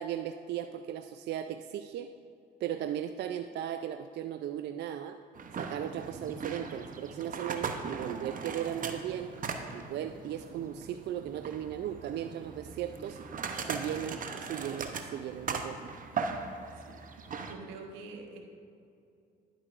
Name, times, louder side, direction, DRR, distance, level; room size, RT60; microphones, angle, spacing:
voice 1, 0.0-2.1 2.6-5.2 5.6-9.3 9.7-13.2 13.6-15.8, right 10 dB, 60° right, 8 dB, 0.4 m, -37 dB
sound 1, 5.3-17.5, right 5 dB, 45° right, 0.8 m, -39 dB
voice 2, 17.4-18.4, right 4 dB, 85° right, 3 dB, 1.1 m, -46 dB
11.0 x 8.5 x 2.5 m, 2.5 s
supercardioid pair, 70°, 20 cm